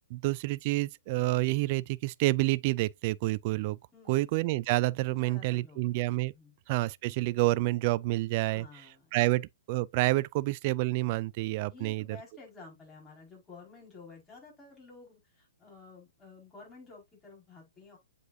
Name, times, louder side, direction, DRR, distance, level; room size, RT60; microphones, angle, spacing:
voice 1, 0.1-3.8 4.1-6.3 6.7-8.7 9.1-12.0, right 19 dB, 40° right, 0.3 m, -28 dB
voice 2, 5.1-5.9 6.1-6.5 8.5-9.3 11.7-18.0, left 4 dB, 15° left, 5.1 m, -52 dB
8.0 x 5.0 x 2.7 m
hypercardioid pair, 135°, 0 cm